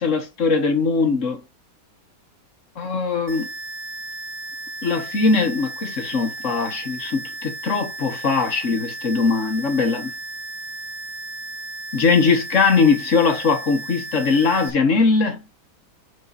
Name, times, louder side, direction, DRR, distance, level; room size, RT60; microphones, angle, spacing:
voice 1, 0.0-1.4 2.8-3.5 4.8-10.1 11.9-15.4, left 4 dB, 50° left, 1.6 m, -20 dB
sound 1, 3.3-14.7, right 2 dB, 80° right, 2.8 m, -35 dB
6.7 x 4.4 x 4.1 m
omnidirectional pair, 1.8 m